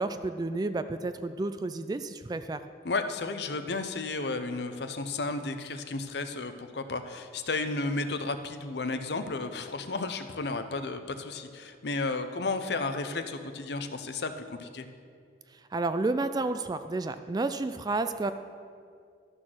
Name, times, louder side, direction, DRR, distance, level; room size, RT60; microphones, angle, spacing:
voice 1, 0.0-2.6 15.7-18.3, right 2 dB, 20° right, 11 dB, 0.3 m, -31 dB
voice 2, 2.8-14.9, left 3 dB, 60° left, 8 dB, 0.7 m, -33 dB
12.5 x 6.2 x 6.2 m, 2.2 s
head